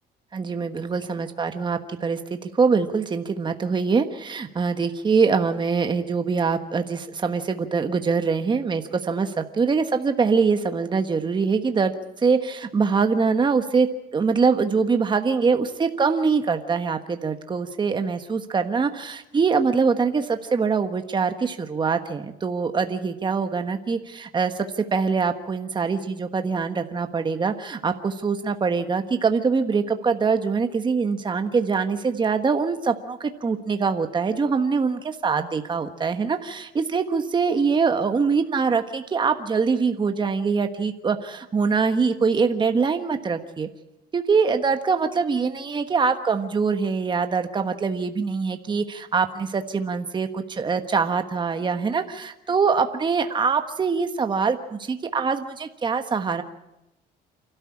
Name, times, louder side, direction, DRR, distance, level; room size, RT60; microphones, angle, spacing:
voice 1, 0.3-11.9 12.2-13.9 14.1-43.7 44.1-56.4, right 5 dB, 25° right, 7 dB, 1.3 m, -23 dB
28.0 x 13.0 x 8.5 m, 0.92 s
cardioid pair, 110°, 17 cm